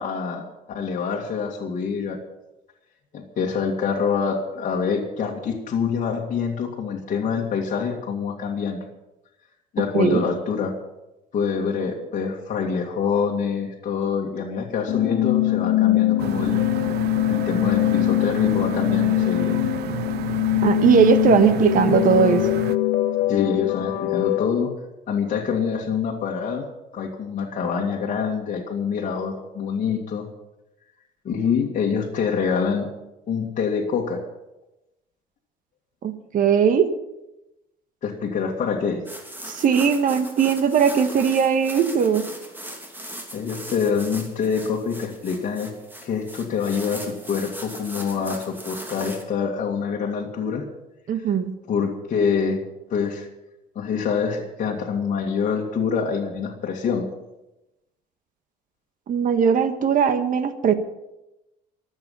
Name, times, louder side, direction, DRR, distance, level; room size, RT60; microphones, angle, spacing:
voice 1, 0.0-2.2 3.1-8.8 9.7-10.7 11.3-16.6 17.3-19.6 23.3-24.7 25.1-26.7 26.9-30.3 31.2-32.9 33.3-34.2 38.0-39.0 43.3-45.7 46.0-50.7 51.1-51.3 51.7-53.3 53.8-57.1, left 6 dB, 50° left, -2 dB, 2.2 m, -26 dB
sound 1, 14.9-24.5, left 15 dB, 85° left, 1.1 m, -22 dB
sound 2, 16.2-22.8, right 14 dB, 75° right, 0.7 m, -32 dB
voice 2, 20.6-22.5 36.0-36.9 39.4-42.3 51.1-51.5 59.1-60.7, right 7 dB, 55° right, 9 dB, 1.5 m, -19 dB
sound 3, 39.0-49.2, right 1 dB, 10° right, 2.9 m, -39 dB
24.0 x 8.2 x 5.6 m, 0.94 s
cardioid pair, 110°, 17 cm